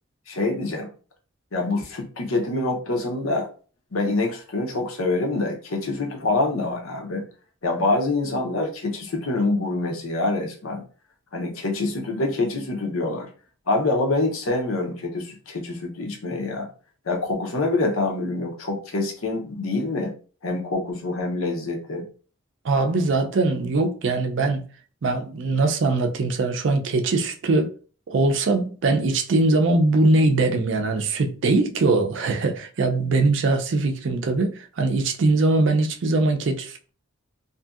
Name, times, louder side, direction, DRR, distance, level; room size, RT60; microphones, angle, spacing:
voice 1, 0.3-0.9 1.5-3.5 3.9-7.2 7.6-10.8 11.3-13.3 13.7-16.7 17.0-20.1 20.4-22.0, left 2 dB, 85° left, 0.7 m, -25 dB
voice 2, 22.6-24.6 25.0-27.7 28.1-36.9, right 2 dB, 60° right, 0.4 m, -21 dB
2.6 x 2.6 x 2.4 m
head